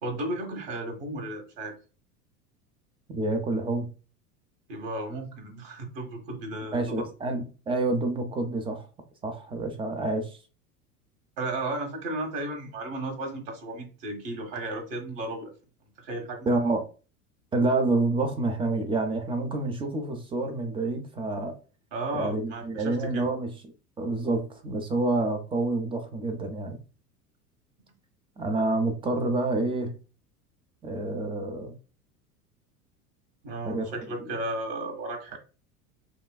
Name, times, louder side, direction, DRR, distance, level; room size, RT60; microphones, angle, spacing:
voice 1, 0.0-1.7 4.7-7.0 11.4-15.5 16.0-16.6 21.9-23.2 33.4-35.4, right 2 dB, 55° right, 1.4 m, -34 dB
voice 2, 3.1-3.9 6.7-8.9 9.2-10.4 16.5-16.8 17.5-21.5 22.1-23.5 24.0-26.8 28.4-29.9 30.8-31.7 33.7-33.9 34.2-34.3, right 2 dB, 10° right, 0.4 m, -28 dB
5.7 x 2.3 x 2.2 m
figure-of-eight pair, 80°, 46 cm